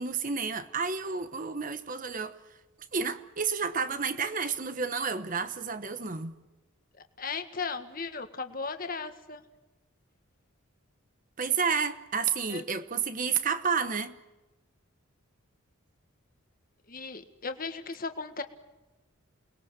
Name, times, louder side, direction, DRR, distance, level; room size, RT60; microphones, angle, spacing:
voice 1, 0.0-2.4 2.9-6.3 11.4-14.2, right 5 dB, 35° right, 1.1 m, -30 dB
voice 2, 6.9-9.4 12.5-12.6 16.9-18.4, left 4 dB, 40° left, 1.7 m, -36 dB
29.0 x 21.0 x 7.5 m
head